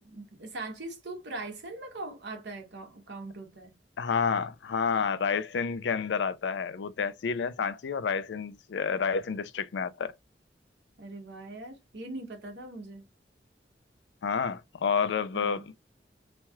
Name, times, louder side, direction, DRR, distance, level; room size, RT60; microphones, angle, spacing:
voice 1, 0.0-3.8 11.0-13.1 15.3-15.6, right 2 dB, 80° right, 1.1 m, -41 dB
voice 2, 4.0-10.1 14.2-15.8, left 6 dB, 85° left, 0.4 m, -29 dB
3.0 x 2.3 x 2.8 m
head